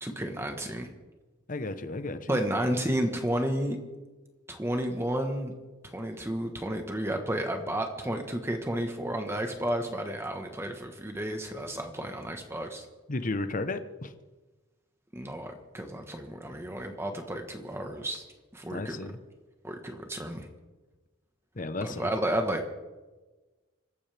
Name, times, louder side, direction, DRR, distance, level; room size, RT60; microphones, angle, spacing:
voice 1, 0.0-0.9 2.3-3.8 4.5-5.5 5.8-12.9 15.1-18.2 18.5-19.0 19.6-20.5 21.8-22.6, right 1 dB, 15° right, 4 dB, 1.4 m, -32 dB
voice 2, 1.5-2.4 13.1-14.1 18.7-19.2 21.6-22.1, left 2 dB, 45° left, 10 dB, 1.0 m, -33 dB
26.5 x 15.0 x 3.5 m, 1.2 s
head